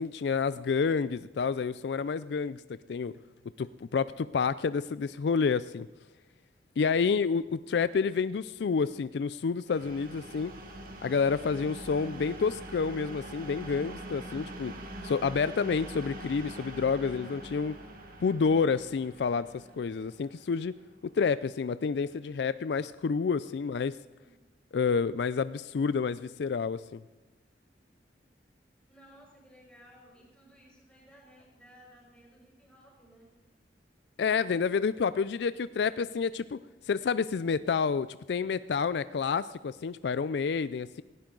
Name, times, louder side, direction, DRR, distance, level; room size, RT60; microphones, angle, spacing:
voice 1, 0.0-2.6 2.9-3.1 3.6-5.9 6.8-10.5 11.0-14.7 15.0-17.7 18.2-20.7 21.0-24.0 24.7-27.0 34.2-36.6 36.9-41.0, left 5 dB, 70° left, 15 dB, 0.4 m, -29 dB
sound 1, 9.7-21.3, right 1 dB, 55° right, 2.1 m, -44 dB
voice 2, 28.9-33.3, equal, 5° left, -4 dB, 6.3 m, -57 dB
18.0 x 16.5 x 3.9 m, 1.1 s
head